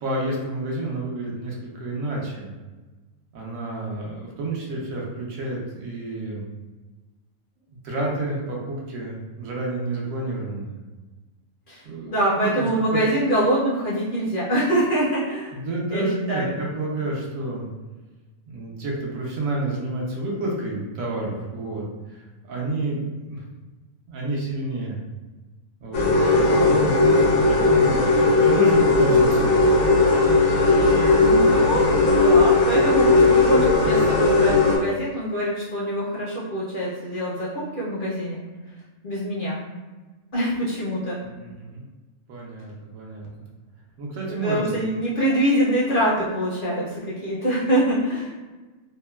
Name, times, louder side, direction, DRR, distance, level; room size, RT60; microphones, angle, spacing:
voice 1, 0.0-2.5 3.3-6.4 7.8-10.7 11.8-13.0 15.5-17.7 18.5-23.4 24.1-25.0 25.8-29.7 41.2-41.8 42.3-43.5 44.0-44.7, right 2 dB, 85° right, -2 dB, 1.1 m, -30 dB
voice 2, 11.7-15.5 15.9-16.5 31.2-38.4 39.0-39.6 40.3-41.2 44.3-48.3, right 1 dB, 55° left, -8 dB, 0.6 m, -24 dB
sound 1, 25.9-34.8, left 3 dB, 85° left, 1.1 m, -17 dB
3.0 x 2.1 x 2.2 m, 1.2 s
omnidirectional pair, 1.4 m